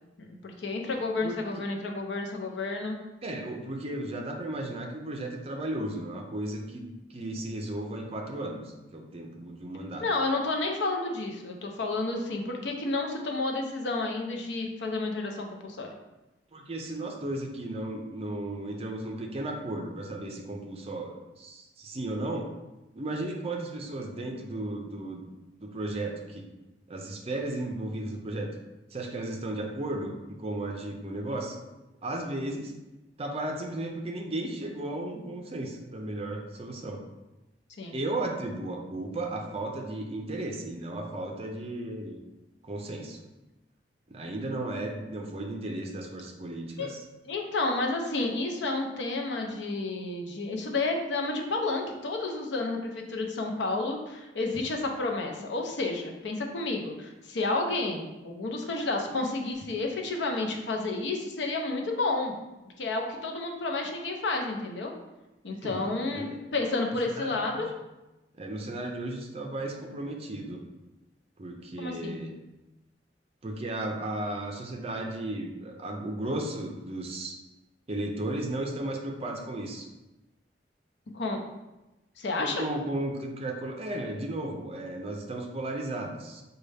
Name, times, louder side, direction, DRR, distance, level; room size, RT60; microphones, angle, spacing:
voice 1, 0.2-3.0 10.0-15.9 37.8-38.0 46.8-46.9 47.3-62.3 62.8-64.9 65.4-67.7 71.8-72.1 81.1-81.4 82.2-82.6, left 2 dB, 75° left, 2 dB, 0.6 m, -31 dB
voice 2, 3.2-10.1 16.5-22.5 22.9-25.2 25.6-26.5 26.9-28.5 28.9-31.6 32.0-32.7 33.2-37.0 37.9-42.2 42.6-43.2 44.1-47.0 65.6-66.4 67.1-67.7 68.4-70.6 71.4-72.3 73.4-77.4 77.9-79.9 82.4-86.4, right 1 dB, 35° right, 2 dB, 0.5 m, -35 dB
5.2 x 2.3 x 3.3 m, 1.0 s
head